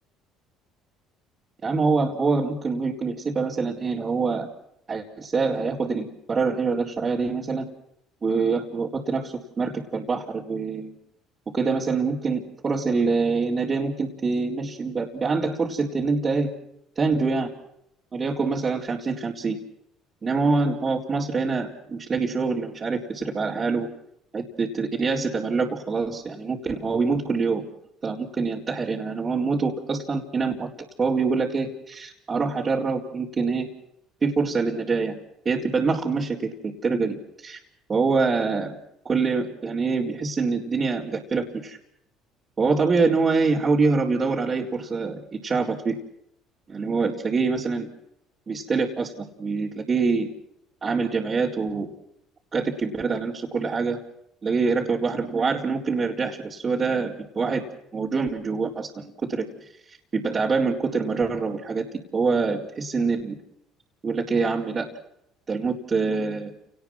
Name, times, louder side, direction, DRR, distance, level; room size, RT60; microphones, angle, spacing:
voice 1, 1.6-4.5 4.9-7.7 8.2-10.9 11.5-16.5 17.0-17.5 18.1-19.6 20.2-23.9 24.3-27.6 28.0-30.7 31.0-33.7 34.2-35.2 35.4-37.2 37.4-37.6 37.9-38.8 39.0-41.8 42.6-46.0 46.7-47.9 48.5-50.3 50.8-51.9 52.5-54.0 54.4-57.6 57.9-59.7 60.1-61.9 62.1-63.4 64.0-64.9 65.5-66.5, right 4 dB, 30° right, -5 dB, 4.2 m, -25 dB
29.0 x 19.5 x 6.2 m, 0.77 s
supercardioid pair, 80°, 0 cm